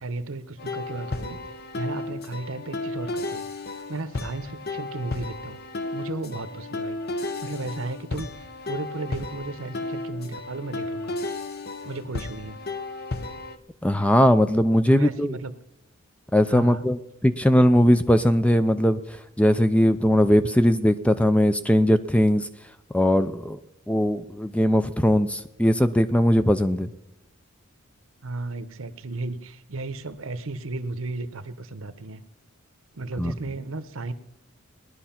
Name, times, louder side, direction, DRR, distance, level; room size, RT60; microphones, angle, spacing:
voice 1, 0.0-5.6 5.9-11.2 11.8-12.6 14.9-15.5 16.5-16.9 28.2-32.2 32.9-34.1, right 2 dB, 70° right, 12 dB, 1.0 m, -34 dB
sound 1, 0.6-13.6, left 2 dB, 45° left, 0.8 m, -33 dB
voice 2, 13.8-15.4 16.3-19.0 19.4-22.5 22.9-23.6 23.9-26.9 33.2-33.3, equal, 5° left, 11 dB, 0.4 m, -20 dB
18.5 x 11.0 x 5.8 m, 0.89 s
head